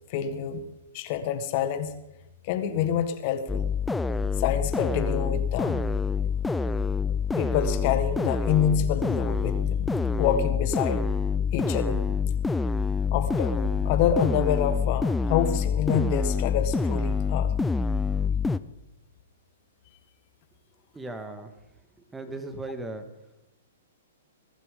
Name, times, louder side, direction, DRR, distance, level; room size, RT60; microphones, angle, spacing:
voice 1, 0.1-0.6 0.9-1.9 2.4-3.7 4.4-5.9 7.4-11.0 11.5-12.1 13.1-17.5, left 9 dB, 45° left, 10 dB, 1.6 m, -27 dB
sound 1, 3.5-18.6, left 5 dB, 5° left, 0.5 m, -26 dB
voice 2, 20.9-21.5 22.1-23.1, right 2 dB, 10° right, 7 dB, 1.8 m, -37 dB
21.0 x 12.0 x 3.8 m, 0.91 s
hypercardioid pair, 125°, 0 cm